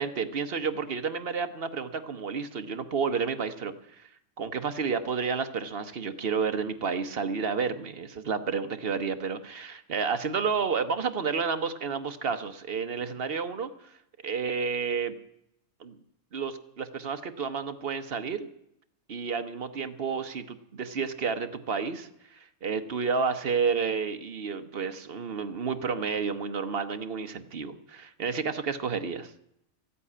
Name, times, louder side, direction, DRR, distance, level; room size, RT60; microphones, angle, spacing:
voice 1, 0.0-4.1 4.4-13.7 14.2-15.1 15.8-16.0 16.3-18.5 19.1-22.1 22.6-29.3, right 5 dB, 50° right, 8 dB, 1.1 m, -30 dB
14.0 x 8.3 x 9.7 m, 0.78 s
omnidirectional pair, 1.4 m